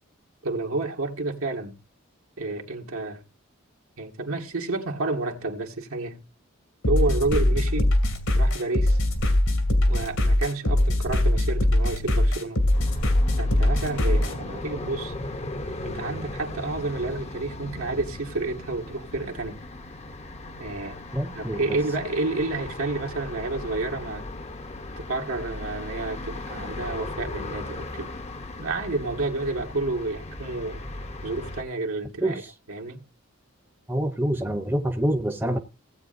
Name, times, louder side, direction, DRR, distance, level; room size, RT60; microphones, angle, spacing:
voice 1, 0.4-1.8 2.4-3.2 4.0-6.2 6.9-7.9 8.3-9.0 9.9-12.6 13.4-15.1 15.8-19.6 20.6-21.0 21.3-24.3 25.0-28.1 28.6-30.8 31.2-32.4 32.7-33.0, right 2 dB, 85° right, 1.8 m, -30 dB
sound 1, 6.8-14.3, left 1 dB, 80° left, 2.4 m, -22 dB
sound 2, 12.7-31.6, left 2 dB, 30° left, 0.7 m, -37 dB
voice 2, 21.1-21.8 32.2-32.3 33.9-35.6, right 1 dB, 10° right, 0.8 m, -26 dB
17.5 x 8.6 x 2.6 m
head